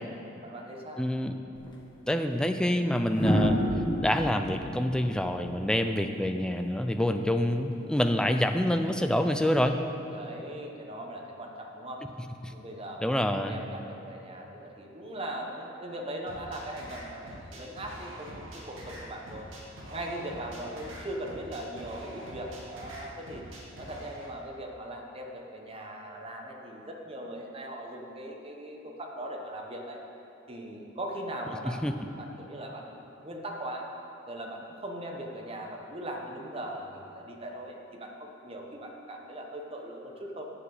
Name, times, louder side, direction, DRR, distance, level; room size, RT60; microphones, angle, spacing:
voice 1, 0.0-1.0 10.1-12.0 12.5-19.5 19.9-23.4 23.8-30.0 30.5-33.9 34.3-40.5, right 1 dB, 30° right, 1 dB, 1.1 m, -40 dB
voice 2, 1.0-1.3 2.1-3.6 4.0-9.8 12.4-12.5 13.0-13.6 31.7-31.9, left 1 dB, 5° left, 6 dB, 0.4 m, -27 dB
sound 1, 1.5-1.7 3.1-6.2 7.7-8.0, equal, 25° left, 1.3 m, -29 dB
sound 2, 16.3-24.3, right 1 dB, 75° right, 1.9 m, -45 dB
10.0 x 7.4 x 6.5 m, 2.9 s
head